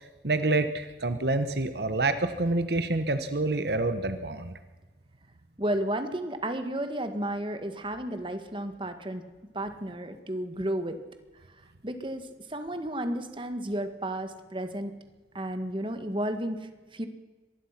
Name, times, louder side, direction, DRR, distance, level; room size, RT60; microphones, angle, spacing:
voice 1, 0.2-4.5, right 2 dB, 65° right, 10 dB, 1.2 m, -27 dB
voice 2, 5.6-9.2 9.5-11.0 11.8-14.9 15.3-17.1, right 1 dB, 30° right, 8 dB, 1.8 m, -32 dB
25.0 x 20.0 x 6.0 m, 1.2 s
head